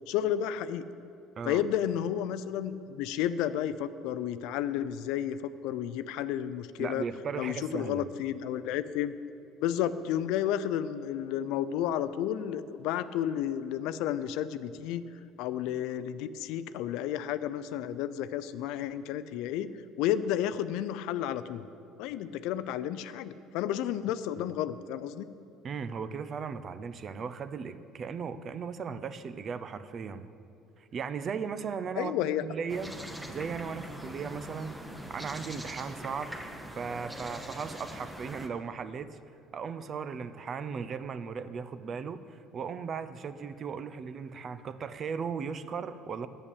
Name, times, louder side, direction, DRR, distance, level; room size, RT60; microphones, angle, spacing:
voice 1, 0.1-0.8 1.4-7.0 7.4-9.1 9.6-15.0 15.4-19.7 20.0-21.6 22.0-25.3 32.0-32.4, left 10 dB, 75° left, 14 dB, 0.4 m, -31 dB
voice 2, 6.8-8.0 25.6-30.3 30.8-32.9 33.3-34.8 35.1-36.3 36.8-39.2 39.5-46.3, right 6 dB, 40° right, 13 dB, 0.5 m, -37 dB
sound 1, 32.7-38.5, equal, 5° right, 0.9 m, -42 dB
8.7 x 7.0 x 8.3 m, 2.5 s
supercardioid pair, 110°, 0 cm